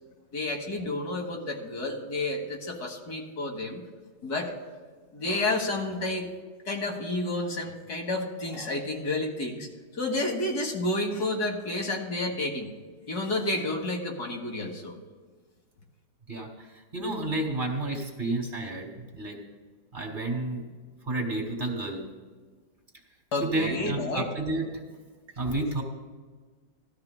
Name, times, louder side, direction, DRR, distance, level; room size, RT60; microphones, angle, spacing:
voice 1, 0.3-3.8 4.2-4.5 5.1-6.3 6.7-9.7 9.9-12.7 13.1-15.0 23.3-24.3, left 2 dB, 60° left, 2 dB, 1.9 m, -30 dB
voice 2, 16.9-18.9 19.1-19.4 19.9-20.6 21.1-22.0 23.4-24.6 25.4-25.8, right 2 dB, 25° right, 1 dB, 2.3 m, -30 dB
18.5 x 13.0 x 2.2 m, 1.4 s
omnidirectional pair, 2.0 m